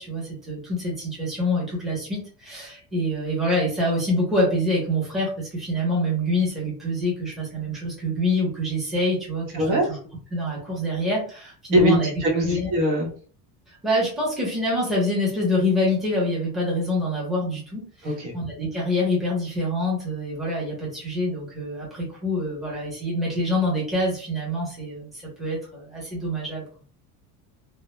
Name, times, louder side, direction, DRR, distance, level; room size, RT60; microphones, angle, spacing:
voice 1, 0.0-10.0 10.3-12.1 12.4-12.7 13.7-26.6, left 1 dB, ahead, -6 dB, 0.7 m, -26 dB
voice 2, 9.5-9.9 11.7-13.1 18.0-18.3, right 1 dB, 65° right, 0 dB, 0.9 m, -22 dB
2.1 x 2.0 x 2.9 m, 0.42 s
cardioid pair, 165°, 40 cm